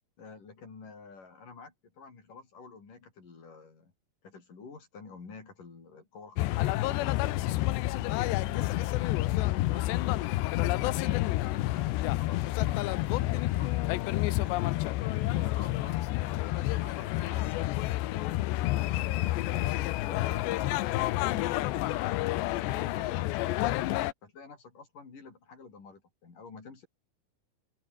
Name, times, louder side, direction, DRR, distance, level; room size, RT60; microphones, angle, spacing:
voice 1, 0.2-3.9 4.2-6.8 7.2-8.0 8.4-10.3 10.8-12.8 13.2-14.7 15.1-18.5 18.8-22.0 22.5-23.7 24.2-26.9, left 4 dB, 45° left, 6.6 m, -49 dB
sound 1, 6.4-24.1, left 17 dB, 80° left, 3.1 m, -29 dB
open air
omnidirectional pair, 5.2 m